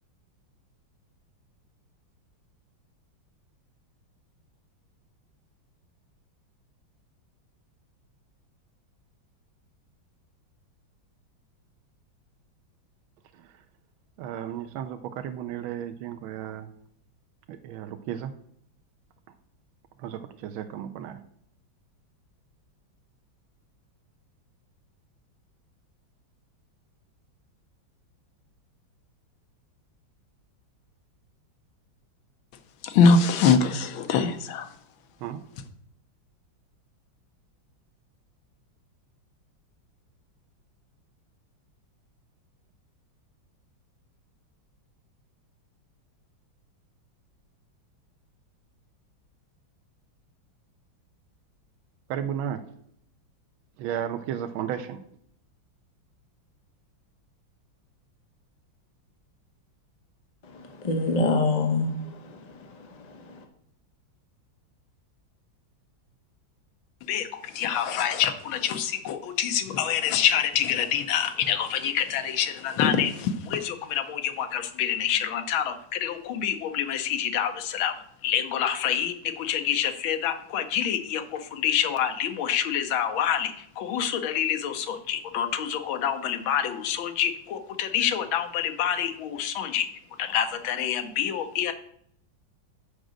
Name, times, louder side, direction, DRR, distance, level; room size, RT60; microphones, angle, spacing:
voice 1, 13.3-13.6 14.2-16.7 17.5-18.3 19.3-19.4 20.0-21.2 35.2-35.4 52.1-52.6 53.8-55.0, right 9 dB, 85° right, 7 dB, 1.4 m, -34 dB
voice 2, 32.8-34.7 67.0-77.9 78.2-89.9 90.2-91.7, left 7 dB, 80° left, 8 dB, 1.6 m, -26 dB
voice 3, 60.4-63.4, left 3 dB, 50° left, 4 dB, 0.5 m, -27 dB
6.5 x 4.9 x 6.2 m, 0.69 s
omnidirectional pair, 2.2 m